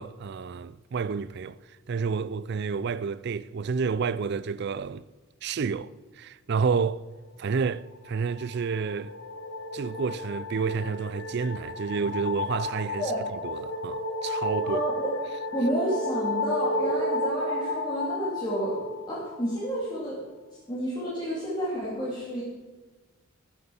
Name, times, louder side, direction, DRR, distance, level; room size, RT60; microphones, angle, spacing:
voice 1, 0.0-1.6 1.9-5.0 5.4-7.0 7.4-9.1 9.7-13.1 13.4-14.8, right 5 dB, 50° right, 0.4 m, -30 dB
sound 1, 8.0-19.4, left 1 dB, 80° left, 1.8 m, -32 dB
voice 2, 14.6-15.1 15.5-20.2 20.7-22.4, equal, 20° left, 2.6 m, -30 dB
13.5 x 8.0 x 6.9 m
head